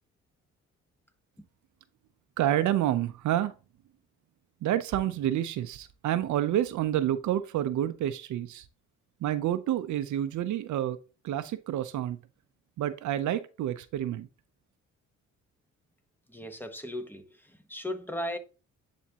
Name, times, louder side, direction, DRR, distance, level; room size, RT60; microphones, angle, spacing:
voice 1, 2.4-3.5 4.6-8.6 9.2-11.0 11.2-12.2 12.8-14.3, right 12 dB, 75° right, 0.6 m, -28 dB
voice 2, 16.3-18.4, left 1 dB, 5° left, 1.0 m, -37 dB
10.0 x 3.6 x 2.8 m
cardioid pair, 90°, 30 cm